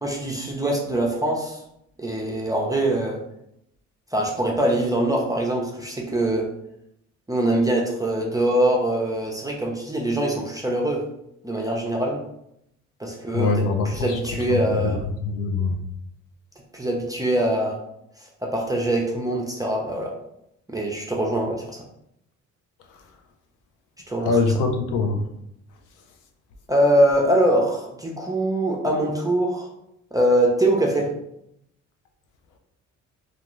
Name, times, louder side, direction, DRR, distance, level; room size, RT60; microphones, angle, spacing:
voice 1, 0.0-1.6 2.0-3.2 4.1-6.5 7.3-11.0 11.4-12.2 13.0-13.5 13.9-15.0 16.7-17.8 18.4-20.1 20.7-21.8 24.1-24.4 26.7-29.7 30.1-31.1, right 1 dB, 10° right, -1 dB, 0.5 m, -23 dB
voice 2, 13.3-14.2 14.5-14.9 15.2-15.8 24.2-25.3, left 3 dB, 90° left, 5 dB, 0.5 m, -23 dB
2.4 x 2.3 x 3.0 m, 0.78 s
cardioid pair, 90°, 30 cm